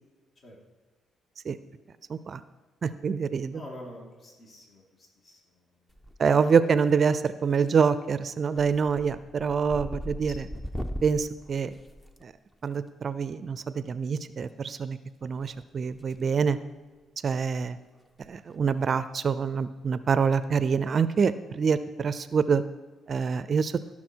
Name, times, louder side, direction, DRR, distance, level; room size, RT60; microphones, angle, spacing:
voice 1, 2.1-2.4 2.8-3.6 6.2-10.3 11.0-11.7 12.2-12.3 12.6-16.6 17.2-17.8 18.3-22.6 23.1-23.7, right 6 dB, 45° right, 14 dB, 0.5 m, -26 dB
voice 2, 3.5-5.6 10.3-10.4, left 1 dB, 45° left, -1 dB, 2.5 m, -46 dB
sound 1, 5.9-6.5 6.8-7.3 7.7-7.9 8.3-12.7 14.0-14.2 15.4-16.2 16.5-16.7 17.2-17.3 17.6-17.7 18.1-18.3 18.5-18.6 20.2-20.4, equal, 10° left, 0.8 m, -39 dB
16.0 x 6.0 x 4.6 m, 1.3 s
cardioid pair, 90°, 0 cm